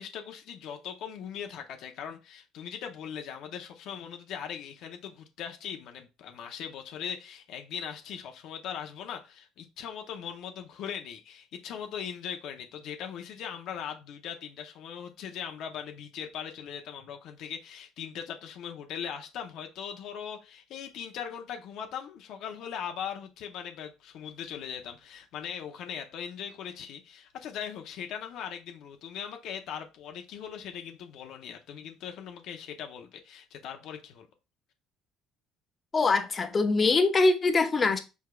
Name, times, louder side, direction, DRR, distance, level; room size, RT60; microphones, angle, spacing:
voice 1, 0.0-34.3, left 8 dB, 65° left, 0.7 m, -40 dB
voice 2, 35.9-38.0, left 3 dB, 35° left, 0.9 m, -23 dB
4.8 x 4.5 x 2.3 m
supercardioid pair, 75°, 0 cm